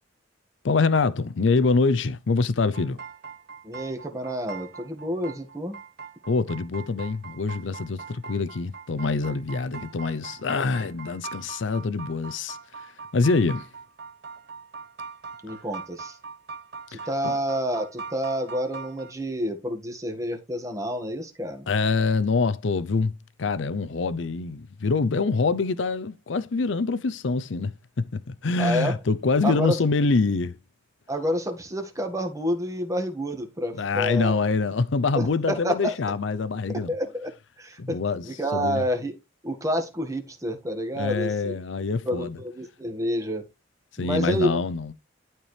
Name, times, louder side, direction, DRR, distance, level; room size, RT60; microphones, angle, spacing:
voice 1, 0.6-3.0 6.3-12.6 13.1-13.7 16.9-17.4 21.7-27.7 28.0-30.6 33.7-36.9 37.8-38.2 38.5-38.8 41.0-42.4 44.0-44.9, left 4 dB, 75° left, 0.6 m, -25 dB
sound 1, 2.7-19.1, right 5 dB, 60° right, 1.0 m, -41 dB
voice 2, 3.6-5.8 15.4-16.2 16.9-21.7 28.6-29.0 29.4-29.8 31.1-34.4 35.1-36.0 36.7-38.0 38.2-39.1 39.4-41.6 42.0-43.4 44.0-44.6, equal, 15° right, 1.7 m, -29 dB
12.0 x 4.5 x 3.3 m
head